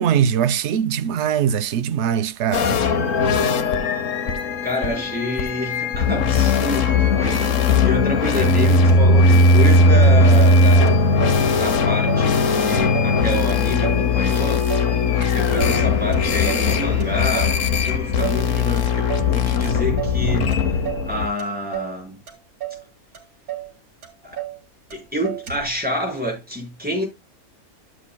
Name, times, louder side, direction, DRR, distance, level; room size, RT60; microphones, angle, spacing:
voice 1, 0.0-2.8, right 8 dB, 60° right, 0.8 m, -21 dB
sound 1, 2.5-21.3, left 3 dB, 60° left, 1.3 m, -18 dB
voice 2, 4.6-11.2 11.5-14.7 15.3-17.6 17.8-20.8 21.1-22.2 24.2-24.4 24.9-27.0, left 1 dB, 5° right, 5.2 m, -28 dB
Motor vehicle (road), 8.8-9.5 10.0-10.1 10.4-11.4 11.7-12.3 12.6-13.2 13.5-15.0 15.2-15.8 16.1-16.7 17.0-17.6 17.9-18.5 18.8-19.3 19.6-20.2 20.5-21.1 21.4-22.0 22.3-22.8 23.1-23.2 23.5-23.7 24.0-24.6 24.9-25.0 25.2-25.8, right 11 dB, 80° right, 2.4 m, -32 dB
Tools, 13.0-17.5, left 2 dB, 25° left, 6.1 m, -41 dB
12.5 x 7.8 x 2.2 m
omnidirectional pair, 1.5 m